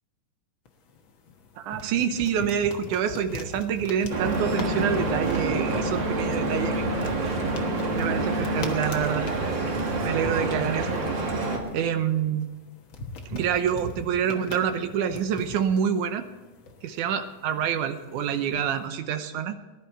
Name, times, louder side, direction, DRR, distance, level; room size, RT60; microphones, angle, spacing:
sound 1, 0.7-18.9, left 3 dB, 60° left, 1.3 m, -43 dB
voice 1, 1.6-7.3 8.0-9.3 10.0-11.0 11.7-12.5 13.3-16.3 16.8-19.6, right 8 dB, 75° right, 9 dB, 2.0 m, -27 dB
Stream / Boat Water vehicle, 4.1-11.6, right 2 dB, 40° right, 2.0 m, -27 dB
19.5 x 11.5 x 4.5 m, 1.2 s
omnidirectional pair, 4.1 m